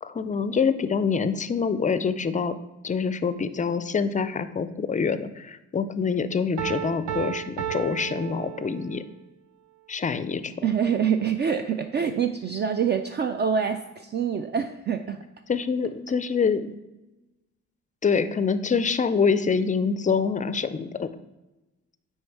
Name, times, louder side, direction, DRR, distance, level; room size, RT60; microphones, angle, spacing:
voice 1, 0.0-2.5 2.8-9.0 9.9-10.5 15.5-16.6 18.0-21.1, left 5 dB, 25° left, 12 dB, 0.4 m, -25 dB
Piano, 6.6-9.2, right 11 dB, 75° right, 0.6 m, -33 dB
voice 2, 10.6-15.2, right 7 dB, 35° right, 7 dB, 0.4 m, -25 dB
6.2 x 4.6 x 4.6 m, 1.0 s
cardioid pair, 90°, 30 cm